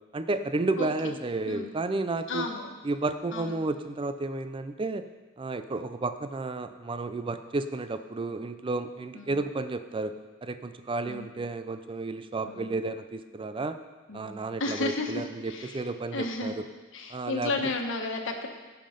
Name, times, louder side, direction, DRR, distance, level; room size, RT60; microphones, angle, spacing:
voice 1, 0.1-2.5 2.8-5.1 5.4-10.1 10.4-13.8 14.1-16.6 17.1-17.5, right 3 dB, 25° right, 9 dB, 0.4 m, -32 dB
voice 2, 0.8-1.2 1.4-1.7 2.3-2.7 3.3-3.6 9.1-9.4 11.1-11.3 12.4-12.7 14.1-14.3 14.6-16.5 16.9-18.5, left 2 dB, 65° left, 3 dB, 1.4 m, -33 dB
16.5 x 5.7 x 5.1 m, 1.3 s
head